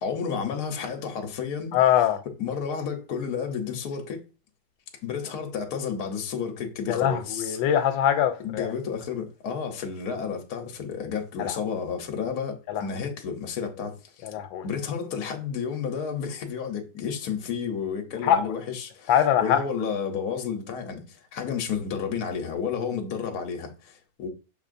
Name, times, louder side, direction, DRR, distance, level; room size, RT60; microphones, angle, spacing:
voice 1, 0.0-1.8 2.4-4.2 5.0-7.6 8.4-14.3 14.6-19.1 19.4-24.3, left 6 dB, 60° left, 1.2 m, -31 dB
voice 2, 1.7-2.2 6.9-8.7 11.4-11.6 12.7-12.8 14.2-14.7 18.2-18.5 19.1-19.6, left 10 dB, 90° left, 1.4 m, -23 dB
5.9 x 3.5 x 2.5 m
omnidirectional pair, 2.0 m